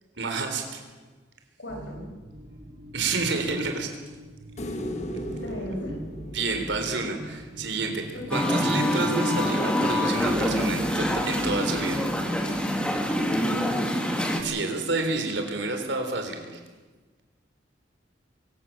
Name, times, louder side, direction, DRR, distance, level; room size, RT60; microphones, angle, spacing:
voice 1, 0.2-0.8 2.9-3.9 6.3-12.1 14.4-16.6, right 3 dB, 75° right, 5 dB, 3.7 m, -29 dB
voice 2, 1.6-2.1 5.1-6.0 8.1-8.7 13.3-13.9, equal, 80° left, 2 dB, 5.6 m, -37 dB
sound 1, 1.7-14.0, equal, 35° right, 1.3 m, -43 dB
sound 2, 4.6-7.8 10.4-10.5, equal, 40° left, 1.7 m, -37 dB
Musical instrument, 8.3-14.4, equal, 5° left, 2.5 m, -25 dB
23.5 x 16.5 x 7.3 m, 1.3 s
head